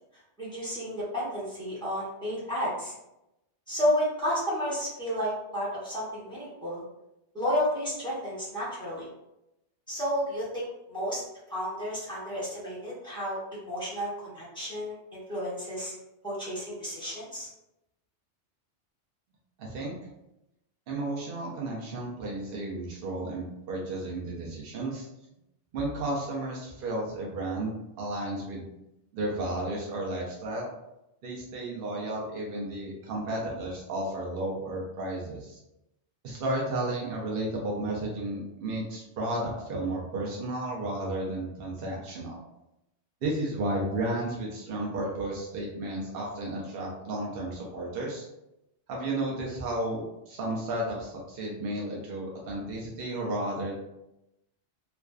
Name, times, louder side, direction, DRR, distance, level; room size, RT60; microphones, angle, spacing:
voice 1, 0.4-2.9 3.7-6.8 7.3-9.1 9.9-11.2 11.5-15.9 16.2-17.5, equal, 5° left, -9 dB, 0.8 m, -31 dB
voice 2, 19.6-19.9 20.9-25.1 25.7-28.7 29.1-30.7 31.2-35.6 36.2-42.4 43.2-48.3 48.9-53.7, right 1 dB, 60° right, -3 dB, 0.7 m, -33 dB
2.5 x 2.2 x 2.3 m, 0.89 s
omnidirectional pair, 1.2 m